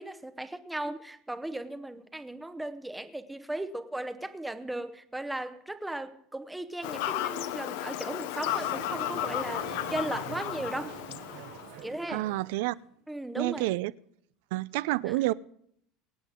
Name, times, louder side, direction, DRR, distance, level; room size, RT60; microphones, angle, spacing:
voice 1, 0.0-11.0 11.8-12.3 13.1-13.7 15.1-15.2, right 1 dB, 5° right, 0.7 m, -37 dB
Fowl / Bird vocalization bird call bird song, 6.8-11.8, left 13 dB, 75° left, 0.7 m, -34 dB
sound 1, 8.4-12.8, right 12 dB, 55° right, 0.8 m, -45 dB
voice 2, 12.1-12.7 13.4-13.9 14.5-15.3, right 18 dB, 75° right, 0.4 m, -29 dB
23.5 x 9.2 x 3.7 m
cardioid pair, 165°, 0 cm